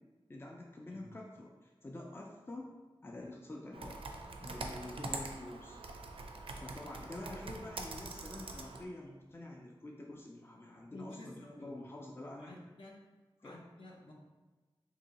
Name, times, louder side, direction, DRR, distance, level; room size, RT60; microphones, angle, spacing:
voice 1, 0.3-2.7 3.0-4.0 4.4-5.8 6.6-12.5 13.4-13.6, left 1 dB, 25° left, -1 dB, 0.4 m, -47 dB
Computer keyboard, 3.7-8.8, right 3 dB, 70° right, 0.4 m, -44 dB
voice 2, 10.9-11.8 12.4-13.0 13.4-14.1, left 1 dB, 65° left, -2 dB, 0.7 m, -51 dB
2.8 x 2.7 x 4.0 m, 1.2 s
wide cardioid pair, 75°, 10 cm